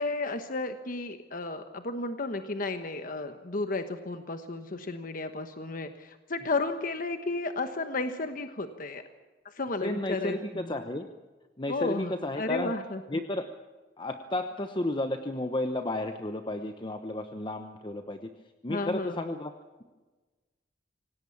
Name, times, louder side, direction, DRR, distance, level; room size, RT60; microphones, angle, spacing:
voice 1, 0.0-9.0 9.4-10.7 11.7-13.0 18.7-19.2, left 3 dB, 50° left, 8 dB, 1.2 m, -33 dB
voice 2, 9.8-11.1 11.6-12.7 13.1-13.4 14.0-18.3 18.6-19.5, left 1 dB, 25° left, 7 dB, 1.0 m, -32 dB
26.0 x 17.5 x 7.2 m, 1.3 s
head